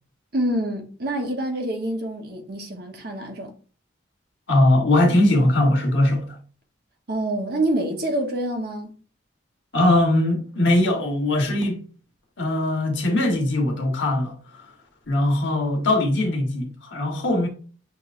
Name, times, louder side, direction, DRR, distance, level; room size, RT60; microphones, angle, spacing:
voice 1, 0.3-3.5 7.1-9.0, right 1 dB, 50° right, 1.0 m, -26 dB
voice 2, 4.5-6.4 9.7-11.8 12.4-14.3 15.1-17.5, left 1 dB, 65° left, 1.3 m, -20 dB
6.1 x 3.0 x 2.5 m
head